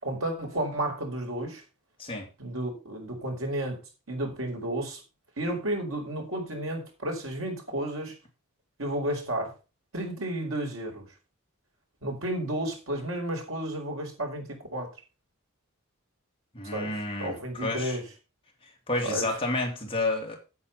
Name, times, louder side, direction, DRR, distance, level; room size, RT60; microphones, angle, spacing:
voice 1, 0.0-1.6 2.4-3.8 4.1-5.0 5.4-8.1 8.8-9.5 9.9-11.1 12.0-14.9 16.7-18.1 19.0-19.3, right 1 dB, 65° right, 4.6 m, -32 dB
voice 2, 16.5-17.4 17.6-18.0 18.9-20.4, left 2 dB, 25° left, 2.6 m, -30 dB
8.7 x 8.4 x 5.4 m
head